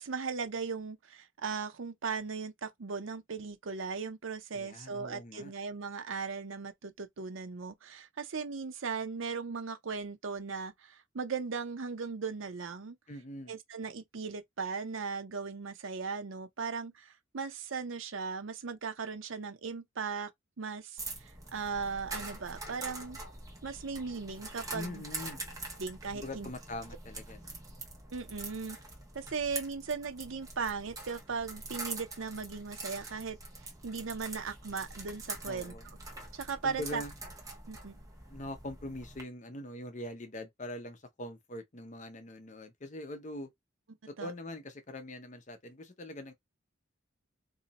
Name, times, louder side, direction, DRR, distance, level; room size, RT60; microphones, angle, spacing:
voice 1, 0.0-13.0 13.5-20.3 20.6-23.2 23.6-25.0 25.8-26.5 28.1-28.8 29.1-33.4 33.8-35.7 36.3-37.0 37.7-38.0 44.2-44.3, right 5 dB, 80° right, 0.7 m, -38 dB
voice 2, 4.5-5.5 13.1-13.5 24.7-25.4 26.1-27.5 35.4-35.8 36.6-37.1 38.3-43.5 44.1-46.3, left 1 dB, 35° left, 0.7 m, -43 dB
sound 1, 21.0-39.2, right 2 dB, 15° right, 1.0 m, -44 dB
2.8 x 2.6 x 4.0 m
head